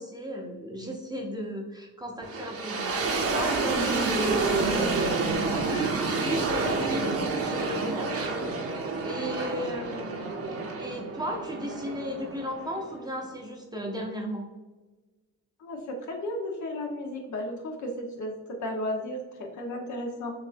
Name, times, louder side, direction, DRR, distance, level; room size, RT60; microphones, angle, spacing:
voice 1, 0.0-5.0 5.7-8.1 9.0-10.1 10.8-14.4, equal, 10° right, 1 dB, 0.7 m, -35 dB
sound 1, 2.2-13.2, right 3 dB, 40° right, 0.9 m, -29 dB
voice 2, 15.6-18.3 18.6-20.3, left 1 dB, 55° left, 2 dB, 1.1 m, -34 dB
6.5 x 2.6 x 2.6 m, 1.2 s
cardioid pair, 95°, 34 cm